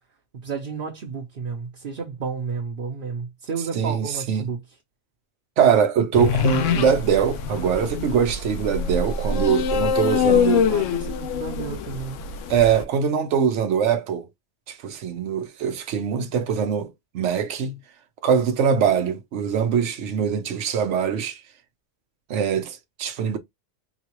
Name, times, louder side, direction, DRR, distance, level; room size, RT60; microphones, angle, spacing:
voice 1, 0.4-4.6 10.2-12.2, right 5 dB, 50° right, 0.9 m, -32 dB
voice 2, 3.7-4.5 5.6-10.7 12.5-14.3 14.7-16.9 17.1-17.8 18.2-21.4 22.3-23.4, right 7 dB, 75° right, 1.0 m, -22 dB
sound 1, 6.1-12.8, left 6 dB, 85° left, 0.9 m, -24 dB
3.9 x 2.4 x 3.0 m
omnidirectional pair, 1.3 m